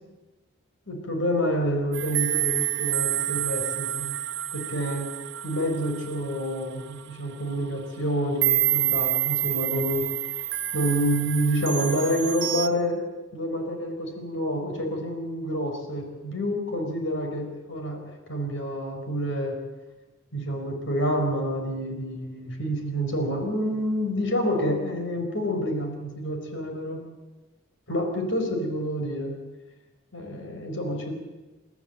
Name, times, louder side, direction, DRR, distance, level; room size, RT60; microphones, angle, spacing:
voice 1, 0.9-4.2 4.5-5.1 5.4-10.1 10.7-13.0 13.3-18.0 18.3-19.6 20.3-27.0 27.9-29.4 30.1-31.1, equal, 60° left, 3 dB, 4.2 m, -28 dB
sound 1, 1.9-7.0 7.5-7.7 8.4-12.7, right 14 dB, 55° right, 0.9 m, -28 dB
29.5 x 13.0 x 7.9 m, 1.2 s
head